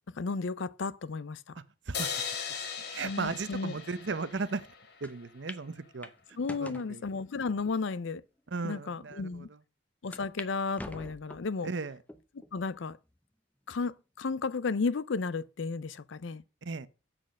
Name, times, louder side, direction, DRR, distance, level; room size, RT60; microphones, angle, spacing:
voice 1, 0.2-1.4 3.0-3.8 6.4-8.2 8.6-9.5 10.0-11.7 12.5-13.0 13.7-16.4, left 4 dB, 75° left, 0.5 m, -33 dB
voice 2, 1.5-2.1 2.9-4.7 5.0-6.1 6.6-7.0 8.5-9.6 11.6-12.0 16.6-16.9, right 4 dB, 65° right, 0.7 m, -36 dB
sound 1, 1.9-5.3, left 6 dB, 55° left, 1.5 m, -38 dB
sound 2, 5.0-5.1 5.5-5.6 6.0-6.9 7.6-7.7 8.4-8.5 8.8-8.9 10.1-10.5 10.8-11.5 12.1-12.5 13.1-13.2 14.3-14.7, left 1 dB, 10° left, 0.6 m, -45 dB
7.6 x 6.4 x 6.3 m
head